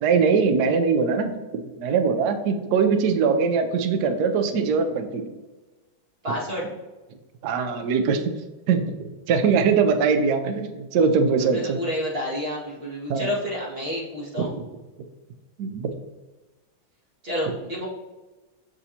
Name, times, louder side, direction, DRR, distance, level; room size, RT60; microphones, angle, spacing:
voice 1, 0.0-5.3 7.4-8.2 8.7-9.0 9.3-11.8 13.1-13.3 14.4-14.6 15.6-15.9, right 5 dB, 65° right, 6 dB, 1.0 m, -22 dB
voice 2, 6.2-6.7 11.4-14.5 17.2-17.9, equal, 30° right, -5 dB, 2.0 m, -29 dB
6.8 x 6.1 x 2.8 m, 1.2 s
omnidirectional pair, 2.2 m